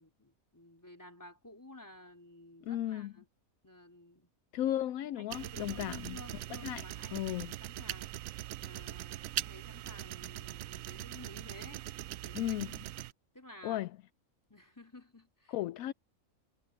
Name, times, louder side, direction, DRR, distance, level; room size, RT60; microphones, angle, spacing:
voice 1, 0.0-3.3 3.6-4.3 5.2-8.1 8.6-11.9 12.2-12.6 13.3-13.8 14.5-15.5, left 1 dB, 10° left, 3.7 m, -53 dB
voice 2, 2.6-3.1 4.5-6.2 6.6-6.8 7.1-7.5 12.3-12.7 13.6-13.9 15.5-15.9, left 13 dB, 80° left, 1.0 m, -35 dB
sound 1, 5.3-13.1, right 14 dB, 75° right, 0.9 m, -41 dB
omnidirectional pair, 1.5 m